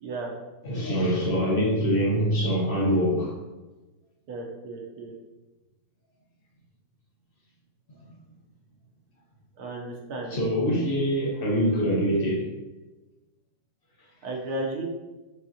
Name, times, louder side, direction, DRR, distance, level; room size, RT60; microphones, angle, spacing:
voice 1, 0.0-0.3 4.3-5.1 9.6-10.3 14.2-14.8, right 2 dB, 80° right, -1 dB, 1.4 m, -34 dB
voice 2, 0.6-3.3 10.3-12.5, equal, 40° left, -4 dB, 0.9 m, -24 dB
5.1 x 3.5 x 2.8 m, 1.1 s
omnidirectional pair, 1.6 m